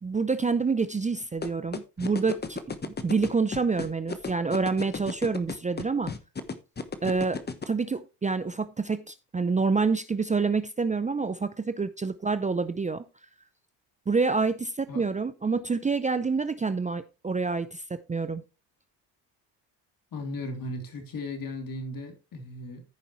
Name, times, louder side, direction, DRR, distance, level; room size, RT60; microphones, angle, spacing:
voice 1, 0.0-6.1 7.0-7.4 7.7-13.0 14.1-18.4, right 4 dB, 15° right, 0.6 m, -27 dB
sound 1, 1.4-7.7, left 5 dB, 20° left, 1.1 m, -33 dB
voice 2, 20.1-22.8, left 2 dB, 45° left, 3.2 m, -36 dB
14.5 x 5.3 x 3.2 m
supercardioid pair, 85°, 46 cm